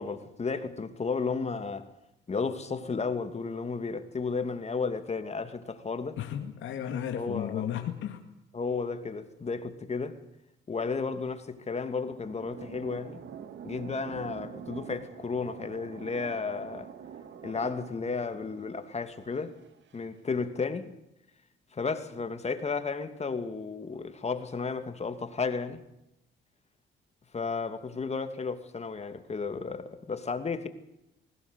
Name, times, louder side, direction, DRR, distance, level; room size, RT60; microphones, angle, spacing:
voice 1, 0.0-1.9 2.3-6.2 7.1-7.6 8.5-10.2 10.7-13.2 13.6-16.9 17.4-19.5 19.9-20.9 21.7-25.8 27.3-30.7, left 4 dB, 35° left, 2.6 m, -33 dB
voice 2, 6.2-8.2, left 9 dB, 80° left, 2.3 m, -34 dB
sound 1, 11.5-20.0, right 8 dB, 65° right, 2.2 m, -46 dB
21.0 x 17.5 x 8.3 m
cardioid pair, 90°, 20 cm